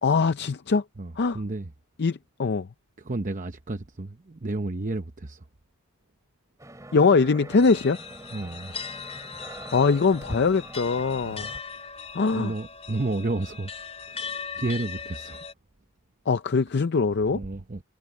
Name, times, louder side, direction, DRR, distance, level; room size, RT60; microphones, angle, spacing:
voice 1, 0.0-0.8 1.2-1.4 2.0-2.7 6.9-8.0 9.7-11.5 12.1-12.5 16.3-17.4, left 4 dB, 50° left, 0.5 m, -22 dB
voice 2, 1.0-1.7 3.0-5.5 8.3-8.8 11.2-11.5 12.3-13.7 14.1-15.4 17.3-17.8, right 2 dB, 35° right, 0.8 m, -32 dB
sound 1, 6.6-11.6, right 1 dB, 15° right, 2.6 m, -42 dB
sound 2, 7.6-15.5, left 6 dB, 25° left, 4.3 m, -39 dB
head